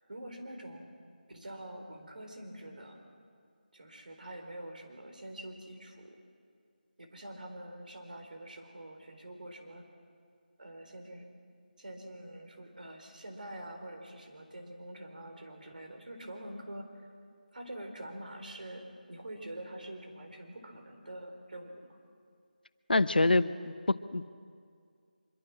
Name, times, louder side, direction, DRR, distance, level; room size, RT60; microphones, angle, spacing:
voice 1, 0.1-0.9 1.3-3.0 3.7-6.2 7.0-9.9 10.6-11.3 11.8-16.8 17.5-18.8 19.1-22.0, right 1 dB, 60° right, 4 dB, 4.2 m, -45 dB
voice 2, 22.9-24.3, left 2 dB, 80° left, 13 dB, 0.9 m, -26 dB
24.5 x 23.5 x 6.1 m, 2.2 s
figure-of-eight pair, 175°, 5 cm